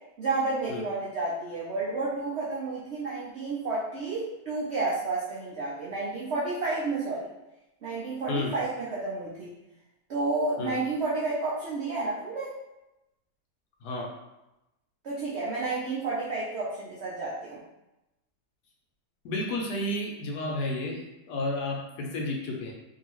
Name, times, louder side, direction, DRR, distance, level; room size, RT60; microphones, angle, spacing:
voice 1, 0.2-7.3 7.8-9.5 10.1-12.5 15.0-17.6, right 3 dB, 70° right, -6 dB, 0.6 m, -31 dB
voice 2, 13.8-14.1 19.2-22.7, left 2 dB, 75° left, -1 dB, 1.1 m, -31 dB
2.8 x 2.7 x 2.9 m, 0.95 s
omnidirectional pair, 1.8 m